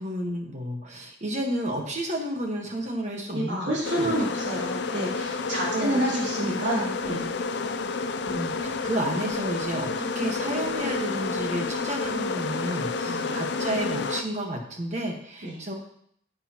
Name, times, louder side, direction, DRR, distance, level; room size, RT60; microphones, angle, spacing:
voice 1, 0.0-4.1 5.7-6.6 8.3-15.7, right 1 dB, 35° right, 2 dB, 1.4 m, -31 dB
voice 2, 3.3-7.3 13.1-13.4 15.4-15.6, right 1 dB, 65° right, -5 dB, 2.9 m, -29 dB
sound 1, 3.8-14.2, left 4 dB, 55° left, 0.5 m, -30 dB
9.7 x 8.3 x 3.0 m, 0.68 s
head